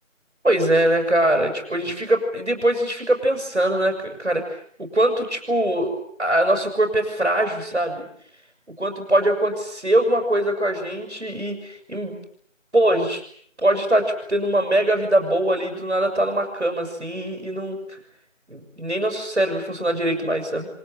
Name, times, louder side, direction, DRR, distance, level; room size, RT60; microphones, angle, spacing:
voice 1, 0.4-8.1 8.8-12.2 12.7-13.2 13.6-18.0 18.5-20.7, right 1 dB, 60° right, 3 dB, 6.8 m, -22 dB
27.5 x 26.0 x 7.7 m, 0.63 s
figure-of-eight pair, 175°, 39 cm